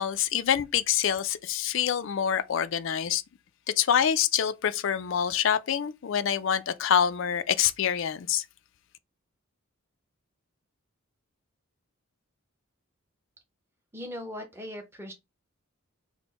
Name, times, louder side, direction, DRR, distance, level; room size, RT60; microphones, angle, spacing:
voice 1, 0.0-3.2 3.8-8.4, left 8 dB, 60° left, 0.4 m, -26 dB
voice 2, 13.9-15.1, left 1 dB, 10° right, 0.8 m, -39 dB
4.3 x 2.2 x 4.1 m
head